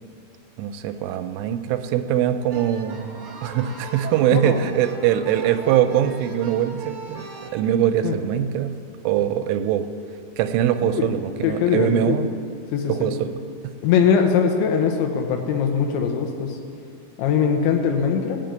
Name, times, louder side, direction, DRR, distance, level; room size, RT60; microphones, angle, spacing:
voice 1, 0.6-8.7 9.0-9.9 10.4-12.3 12.9-13.4, right 10 dB, 85° right, 8 dB, 3.1 m, -22 dB
sound 1, 2.5-7.5, right 4 dB, 65° right, 1.6 m, -39 dB
voice 2, 10.8-11.1 11.4-12.2 12.7-13.1 13.8-16.6 17.2-18.4, left 7 dB, 80° left, 4 dB, 3.2 m, -21 dB
17.0 x 6.0 x 9.1 m, 2.5 s
omnidirectional pair, 5.7 m